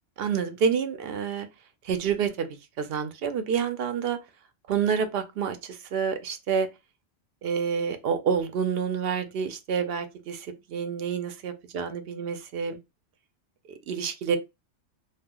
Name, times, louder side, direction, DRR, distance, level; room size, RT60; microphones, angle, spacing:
voice 1, 0.2-1.5 1.8-2.5 2.8-4.2 4.7-6.7 7.4-12.8 13.7-14.4, right 6 dB, 65° right, 0.7 m, -28 dB
2.4 x 2.1 x 3.5 m
omnidirectional pair, 1.2 m